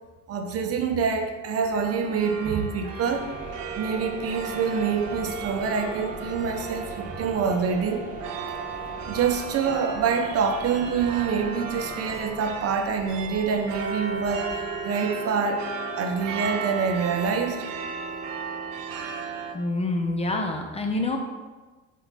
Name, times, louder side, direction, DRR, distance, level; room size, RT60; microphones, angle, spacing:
voice 1, 0.3-3.3 3.8-8.0 9.1-15.7 16.0-17.6, right 5 dB, 45° right, 5 dB, 0.8 m, -26 dB
sound 1, 1.7-19.5, right 5 dB, 85° right, 0.8 m, -36 dB
sound 2, 3.0-14.8, right 4 dB, 25° right, 1.7 m, -39 dB
voice 2, 19.5-21.2, left 2 dB, 20° left, 3 dB, 0.6 m, -26 dB
5.8 x 4.6 x 4.0 m, 1.3 s
cardioid pair, 120°, 33 cm